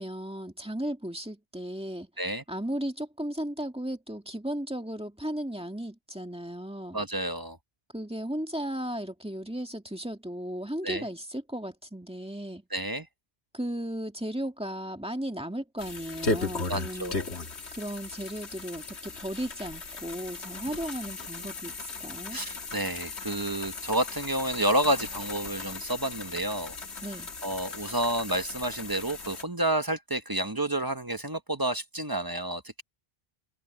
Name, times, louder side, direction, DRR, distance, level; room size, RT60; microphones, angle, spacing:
voice 1, 0.0-2.1 2.5-7.0 7.9-12.6 13.5-17.1 17.7-22.4 27.0-27.3, right 1 dB, 5° right, 2.0 m, -35 dB
voice 2, 6.9-7.6 10.8-11.0 12.7-13.1 16.7-17.2 20.7-20.9 22.3-26.7 27.4-32.8, right 1 dB, 20° right, 1.0 m, -30 dB
sound 1, 15.8-29.4, left 3 dB, 90° left, 2.0 m, -37 dB
open air
omnidirectional pair, 1.1 m